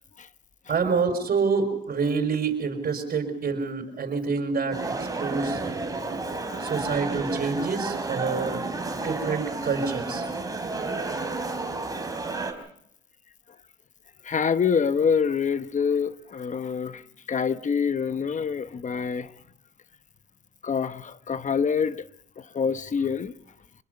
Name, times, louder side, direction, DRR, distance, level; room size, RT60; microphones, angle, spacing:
voice 1, 0.7-5.6 6.6-10.3, right 5 dB, 50° right, 5.8 m, -27 dB
sound 1, 4.7-12.5, right 3 dB, 15° right, 4.3 m, -31 dB
voice 2, 14.2-17.0 17.3-19.3 20.6-22.1 22.4-23.3, left 6 dB, 40° left, 1.0 m, -26 dB
26.5 x 21.0 x 5.4 m
cardioid pair, 90°, 20 cm